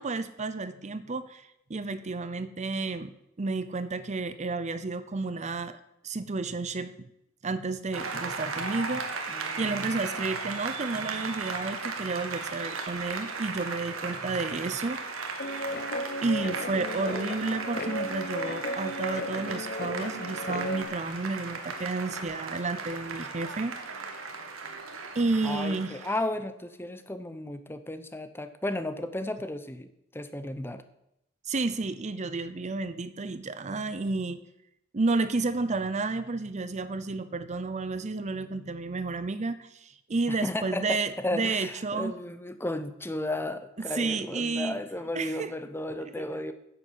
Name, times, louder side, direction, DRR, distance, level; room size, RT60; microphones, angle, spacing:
voice 1, 0.0-1.4 1.7-7.1 7.4-9.2 9.6-15.0 16.2-23.7 25.1-26.0 31.5-34.4 34.9-42.2 43.8-44.8 45.1-45.5 46.2-46.5, right 3 dB, 35° right, 13 dB, 0.6 m, -31 dB
Applause, 7.9-26.2, right 4 dB, 85° right, 1.7 m, -36 dB
voice 2, 9.3-9.7 10.0-10.3 25.4-30.8 40.3-46.5, left 1 dB, 10° left, 10 dB, 0.7 m, -34 dB
sound 1, 12.9-27.6, right 1 dB, 20° right, 2.9 m, -56 dB
Guitar, 15.4-20.8, left 1 dB, 50° left, 0.9 m, -35 dB
9.9 x 7.8 x 8.0 m, 0.81 s
head